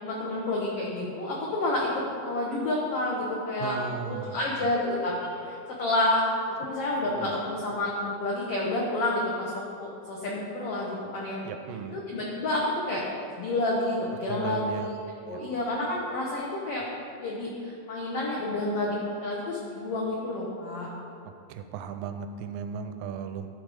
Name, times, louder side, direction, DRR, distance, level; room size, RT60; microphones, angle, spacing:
voice 1, 0.0-1.9 2.2-3.8 4.0-5.1 5.4-6.2 6.5-11.4 11.9-12.6 12.9-13.0 13.4-14.9 15.3-16.8 17.2-20.9, left 2 dB, 90° left, -3 dB, 1.3 m, -29 dB
voice 2, 3.6-4.7 7.2-7.3 11.4-12.0 14.3-14.9 15.3-15.4 21.3-23.5, right 7 dB, 85° right, 8 dB, 2.1 m, -36 dB
11.0 x 3.8 x 4.8 m, 2.5 s
omnidirectional pair, 3.9 m